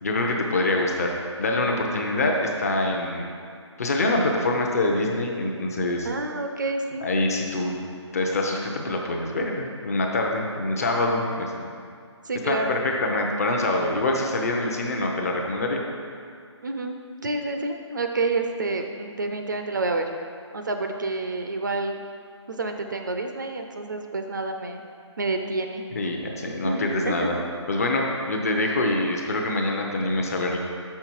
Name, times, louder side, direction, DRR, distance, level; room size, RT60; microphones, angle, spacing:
voice 1, 0.0-3.3 3.8-6.1 7.0-7.7 8.1-11.7 12.4-15.8 25.9-27.4 27.7-30.6, left 2 dB, 30° left, 1 dB, 0.7 m, -25 dB
voice 2, 6.0-7.1 12.2-12.8 16.6-20.1 20.5-22.1 22.5-24.8 25.2-25.8 26.6-27.4, right 3 dB, 40° right, 5 dB, 0.4 m, -29 dB
6.2 x 5.7 x 4.5 m, 2.3 s
hypercardioid pair, 170°, 15 cm